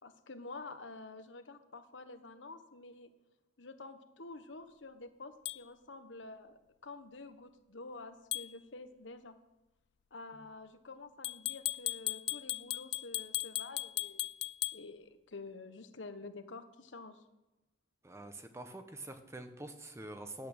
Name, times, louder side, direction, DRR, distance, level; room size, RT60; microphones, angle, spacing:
voice 1, 0.0-3.1 3.6-9.4 10.1-14.3 14.7-17.2, left 3 dB, 80° left, 9 dB, 1.2 m, -49 dB
sound 1, 5.5-5.6 8.3-8.5 11.2-14.8, left 18 dB, 60° left, 0.4 m, -37 dB
voice 2, 18.0-20.5, right 1 dB, 15° right, 8 dB, 1.1 m, -46 dB
11.5 x 8.6 x 8.9 m, 0.98 s
head